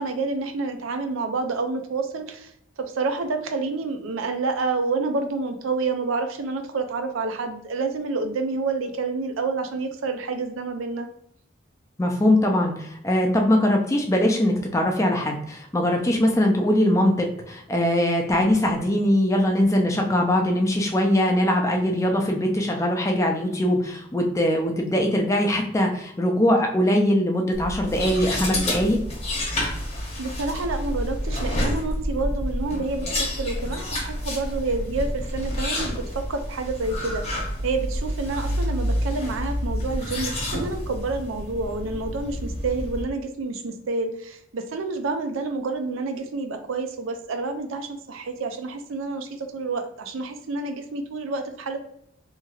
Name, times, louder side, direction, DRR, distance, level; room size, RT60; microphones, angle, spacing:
voice 1, 0.0-2.5 2.9-11.1 30.2-51.8, right 3 dB, 85° right, 6 dB, 0.4 m, -28 dB
voice 2, 12.0-29.0, left 1 dB, 15° left, 2 dB, 0.3 m, -21 dB
sound 1, 27.5-43.0, equal, 30° left, 0.7 m, -29 dB
2.9 x 2.9 x 2.3 m, 0.72 s
head